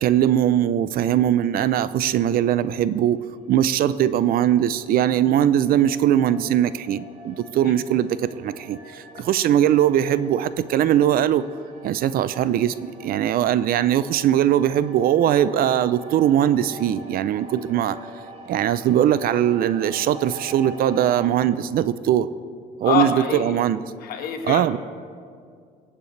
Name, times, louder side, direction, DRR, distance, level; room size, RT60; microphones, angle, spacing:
voice 1, 0.0-3.2 3.5-11.4 11.8-18.0 18.5-22.3 22.8-23.8 24.4-24.8, right 11 dB, 60° right, 15 dB, 0.5 m, -20 dB
sound 1, 3.3-21.3, right 1 dB, 40° right, 2.8 m, -44 dB
voice 2, 22.8-23.6 24.0-24.8, left 6 dB, 60° left, 5 dB, 1.5 m, -25 dB
23.0 x 8.3 x 3.2 m, 2.2 s
cardioid pair, 110°, 17 cm